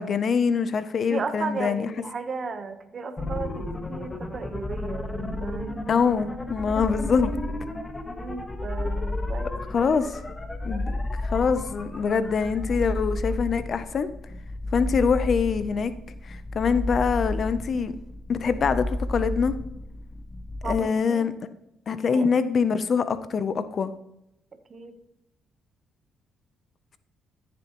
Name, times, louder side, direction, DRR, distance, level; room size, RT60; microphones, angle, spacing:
voice 1, 0.0-1.9 5.9-7.4 9.7-10.2 10.6-14.1 14.7-15.9 16.2-17.9 18.3-19.5 20.6-21.3 21.9-23.9, left 5 dB, 50° left, 0.6 m, -24 dB
voice 2, 1.1-5.8 8.1-9.5 20.6-21.3 22.0-22.3 24.7-25.0, right 4 dB, 45° right, 1.0 m, -35 dB
sound 1, 3.2-20.8, left 2 dB, 20° left, 1.2 m, -32 dB
14.0 x 6.9 x 3.0 m
cardioid pair, 90°, 0 cm